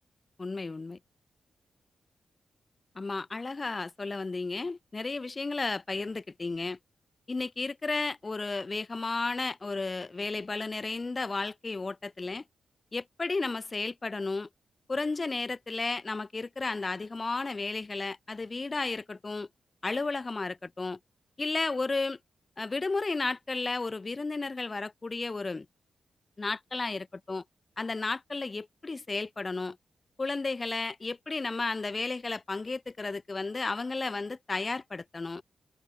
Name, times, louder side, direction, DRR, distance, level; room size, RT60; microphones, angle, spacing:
voice 1, 0.4-1.0 2.9-6.8 7.3-12.4 12.9-14.5 14.9-19.5 19.8-21.0 21.4-22.2 22.6-25.7 26.4-27.4 27.8-29.8 30.2-35.4, left 3 dB, 30° left, 4.5 m, -33 dB
wide cardioid pair, 115°, 0 cm